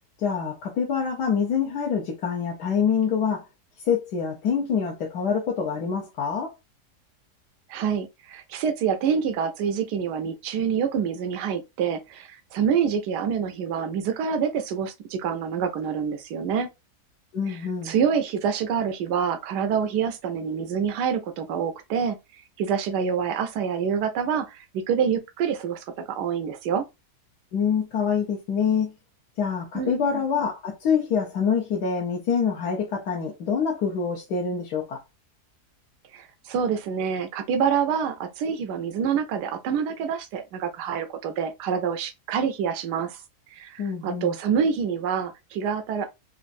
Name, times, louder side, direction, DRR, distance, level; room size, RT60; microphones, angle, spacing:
voice 1, 0.2-3.5 3.8-6.5 17.3-17.9 27.5-28.9 29.4-35.0 43.8-44.3, left 6 dB, 75° left, 1.4 m, -25 dB
voice 2, 7.7-16.7 17.5-17.6 17.8-26.9 29.7-30.2 36.1-43.2 43.5-46.1, right 7 dB, 90° right, 1.2 m, -27 dB
4.3 x 2.5 x 2.5 m
omnidirectional pair, 1.7 m